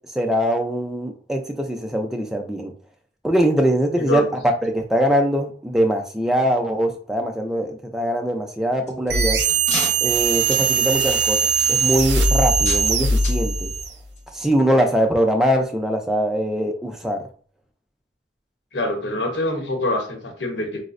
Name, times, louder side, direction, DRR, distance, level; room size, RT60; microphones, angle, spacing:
voice 1, 0.1-2.7 3.2-9.4 10.0-13.7 14.3-17.2, equal, 5° right, 2 dB, 0.3 m, -22 dB
sound 1, 8.7-12.9 13.2-13.4 14.2-14.3 14.8-14.9, left 3 dB, 40° left, 0.7 m, -33 dB
sound 2, 9.1-14.0, right 4 dB, 75° right, 0.5 m, -20 dB
voice 2, 18.7-20.8, left 2 dB, 75° left, 3 dB, 0.9 m, -25 dB
4.7 x 2.0 x 2.5 m, 0.43 s
head